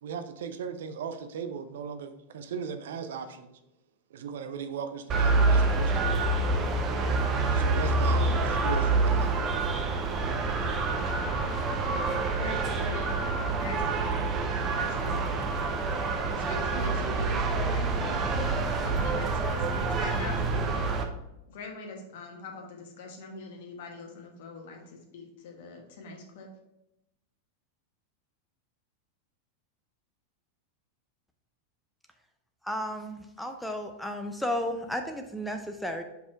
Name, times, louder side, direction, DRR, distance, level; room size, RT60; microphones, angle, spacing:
voice 1, 0.0-3.6 4.1-6.2 6.9-9.4, right 6 dB, 60° right, 9 dB, 0.5 m, -38 dB
sound 1, 5.1-21.0, right 3 dB, 30° right, 0.8 m, -27 dB
voice 2, 12.3-13.1 13.6-14.3 14.8-15.5 16.3-21.0 21.5-24.8 25.1-26.5, left 4 dB, 55° left, 2 dB, 1.3 m, -43 dB
voice 3, 32.6-36.0, equal, ahead, 5 dB, 0.5 m, -33 dB
5.5 x 4.3 x 4.4 m, 0.89 s
figure-of-eight pair, 90°, 0 cm